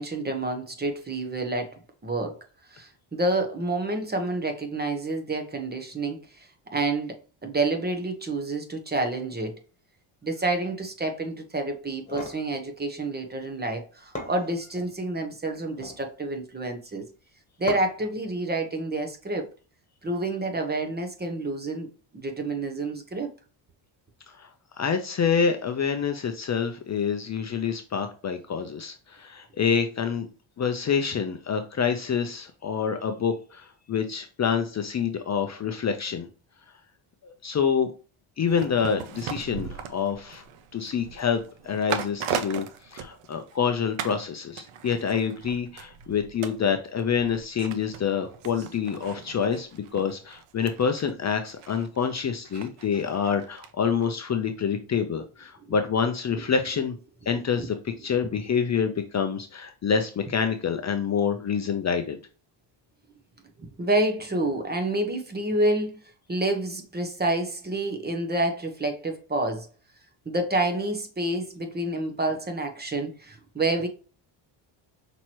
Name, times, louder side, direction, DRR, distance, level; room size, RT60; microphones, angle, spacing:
voice 1, 0.0-2.4 2.7-6.5 6.7-9.5 10.2-17.1 17.6-19.5 20.0-21.9 22.1-23.3 55.6-55.7 57.6-57.7 63.6-66.0 66.3-69.7 70.3-73.9, right 2 dB, 20° right, 0.9 m, -28 dB
sound 1, 11.9-12.4 13.7-13.8 14.2-14.9 15.6-16.1 17.7-18.1, left 2 dB, 15° left, 1.5 m, -37 dB
voice 2, 24.8-30.3 30.6-36.3 37.2-37.9 38.4-40.4 40.7-56.9 57.3-62.2, left 6 dB, 35° left, 0.6 m, -27 dB
sound 2, 38.5-43.7 44.0-44.3 44.6-53.7 54.0-54.1, right 7 dB, 75° right, 0.8 m, -38 dB
5.7 x 3.0 x 3.0 m
cardioid pair, 95°, 49 cm